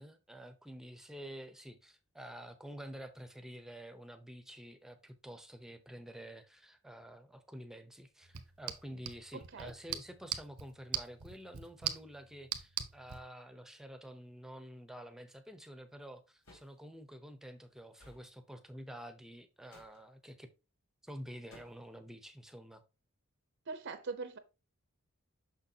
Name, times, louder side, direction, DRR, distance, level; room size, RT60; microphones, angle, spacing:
voice 1, 0.0-20.5 21.0-22.8, equal, ahead, 0.7 m, -49 dB
sound 1, 8.2-13.2, right 10 dB, 85° right, 0.9 m, -42 dB
voice 2, 9.3-9.7 23.7-24.4, right 4 dB, 55° right, 0.7 m, -42 dB
sound 2, 16.4-16.8 18.0-18.3 19.7-20.0 21.5-21.9, left 1 dB, 75° left, 3.3 m, -58 dB
6.5 x 6.2 x 2.8 m
head